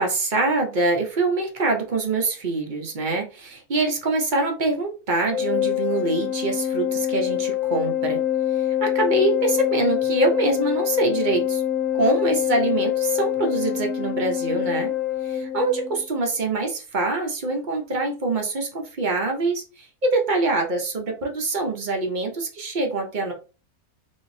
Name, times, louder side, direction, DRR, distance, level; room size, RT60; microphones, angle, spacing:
voice 1, 0.0-8.2 8.8-11.6 11.9-14.9 15.3-23.3, right 2 dB, 45° right, 2 dB, 0.7 m, -24 dB
Organ, 5.3-16.1, left 11 dB, 70° left, 1.0 m, -25 dB
3.5 x 2.7 x 2.6 m, 0.33 s
omnidirectional pair, 1.5 m